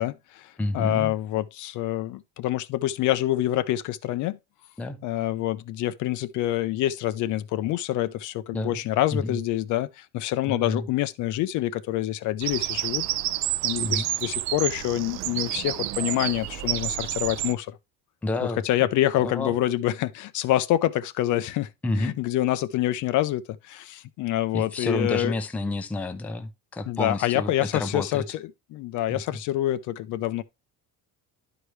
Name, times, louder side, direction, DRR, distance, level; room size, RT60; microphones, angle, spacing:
voice 1, 0.0-4.4 5.0-13.1 13.6-17.8 18.6-21.7 22.0-25.3 26.9-28.4 28.7-30.4, left 14 dB, 55° left, 0.6 m, -26 dB
voice 2, 0.6-1.1 4.8-5.0 8.5-8.8 9.1-9.4 10.5-10.8 13.8-14.1 18.2-18.6 19.2-19.5 21.8-22.2 24.5-28.2 29.1-29.2, left 2 dB, 5° left, 0.5 m, -29 dB
Bird vocalization bird call bird song, 12.4-17.5, right 14 dB, 50° right, 0.5 m, -29 dB
11.0 x 4.9 x 3.1 m
cardioid pair, 175°, 36 cm